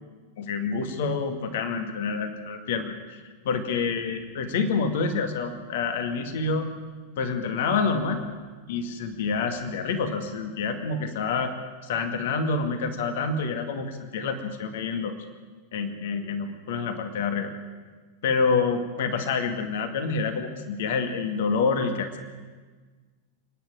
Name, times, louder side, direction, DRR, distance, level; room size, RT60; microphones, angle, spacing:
voice 1, 0.4-6.7 7.2-8.2 8.7-11.5 11.8-15.1 15.7-17.5 18.2-22.2, left 4 dB, 55° left, 6 dB, 2.2 m, -27 dB
28.5 x 10.0 x 9.2 m, 1.4 s
figure-of-eight pair, 90°, 0 cm